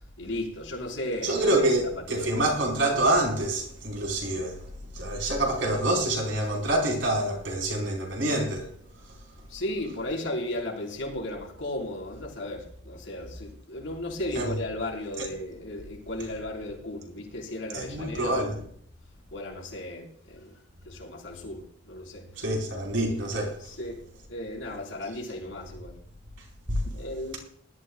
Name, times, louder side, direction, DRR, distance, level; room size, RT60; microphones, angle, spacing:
voice 1, 0.2-1.7 2.1-2.5 9.5-18.5 19.3-20.6 20.8-22.3 23.7-24.0 24.3-25.9 26.9-27.4, left 1 dB, 90° left, 4.6 m, -35 dB
voice 2, 1.2-8.7 9.1-9.2 14.3-14.6 15.2-15.3 17.7-18.6 22.4-23.6 26.7-26.8, right 1 dB, 80° right, 4.7 m, -26 dB
20.5 x 13.0 x 2.4 m
head